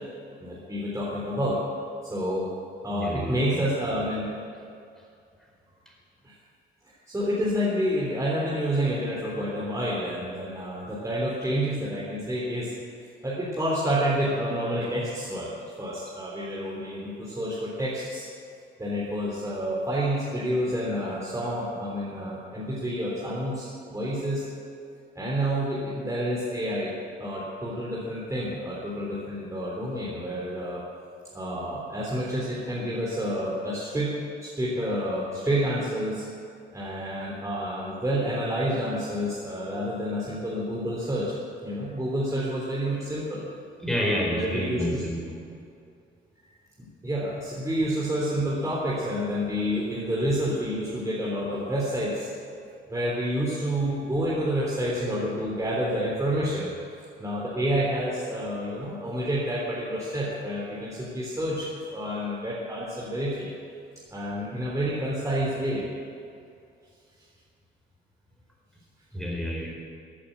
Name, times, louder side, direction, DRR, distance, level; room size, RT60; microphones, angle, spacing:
voice 1, 0.4-1.6 2.0-2.5 2.8-4.3 6.2-6.3 6.8-12.7 13.2-15.5 15.8-18.3 18.8-24.5 25.1-30.8 31.3-34.1 34.4-36.2 36.7-41.3 41.6-43.5 43.9-45.0 46.8-52.3 52.9-56.7 57.0-63.5 64.1-65.8, equal, 15° right, -6 dB, 3.3 m, -29 dB
voice 2, 2.9-3.6 5.9-6.0 43.8-45.4 69.1-69.7, equal, ahead, -2 dB, 4.5 m, -29 dB
15.0 x 8.5 x 8.2 m, 2.5 s
cardioid pair, 90°, 20 cm